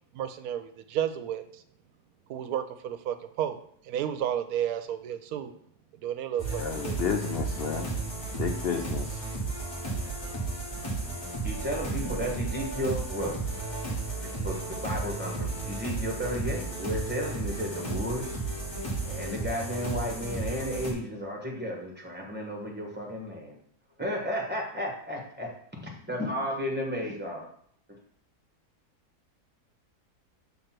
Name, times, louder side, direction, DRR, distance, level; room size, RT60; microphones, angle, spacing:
voice 1, 0.1-1.6 2.3-5.5 6.0-7.0, right 10 dB, 75° right, 9 dB, 1.1 m, -32 dB
sound 1, 6.4-20.9, right 3 dB, 30° left, 1.7 m, -33 dB
voice 2, 6.6-7.9 8.4-9.2, left 7 dB, 85° left, 4 dB, 0.5 m, -31 dB
voice 3, 11.4-13.8 14.4-18.4 19.0-23.6 24.0-25.5 26.0-27.5, equal, 5° right, -1 dB, 1.2 m, -33 dB
6.5 x 3.2 x 5.9 m, 0.64 s
omnidirectional pair, 1.7 m